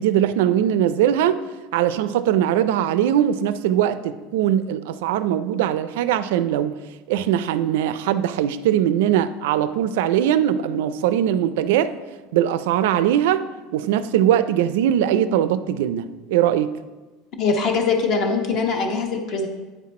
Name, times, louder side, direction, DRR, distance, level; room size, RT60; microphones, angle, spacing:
voice 1, 0.0-1.4 1.7-6.7 7.1-11.9 12.3-13.4 13.7-16.7, right 10 dB, 80° right, 13 dB, 0.4 m, -21 dB
voice 2, 17.4-19.5, left 4 dB, 40° left, 4 dB, 0.9 m, -22 dB
9.1 x 4.1 x 4.2 m, 1.2 s
cardioid pair, 165°, 0 cm